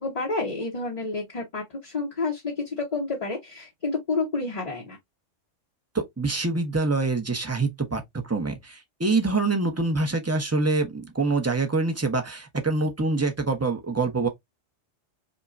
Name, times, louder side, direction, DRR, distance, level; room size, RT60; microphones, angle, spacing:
voice 1, 0.0-5.0, left 3 dB, 35° left, 0.8 m, -29 dB
voice 2, 5.9-14.3, right 3 dB, 15° right, 0.6 m, -25 dB
5.2 x 2.2 x 2.5 m
omnidirectional pair, 1.2 m